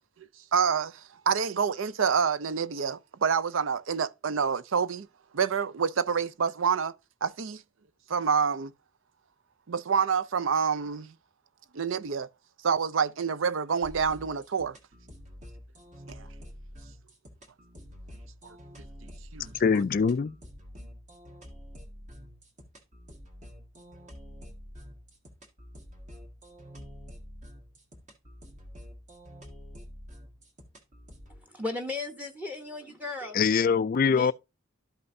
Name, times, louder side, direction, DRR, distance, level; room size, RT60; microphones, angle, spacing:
voice 1, 0.5-5.1 5.3-6.9 7.2-7.6 8.1-8.7 9.7-11.1 11.7-12.3 12.6-14.8 16.1-16.3 18.4-18.6 19.0-19.5, right 6 dB, 65° right, 0.5 m, -27 dB
sound 1, 13.8-31.4, equal, 35° right, 1.6 m, -48 dB
voice 2, 19.6-20.4 33.3-34.3, left 5 dB, 40° left, 0.3 m, -23 dB
voice 3, 31.3-33.4 34.0-34.3, left 3 dB, 5° right, 1.0 m, -36 dB
12.5 x 5.5 x 2.7 m
head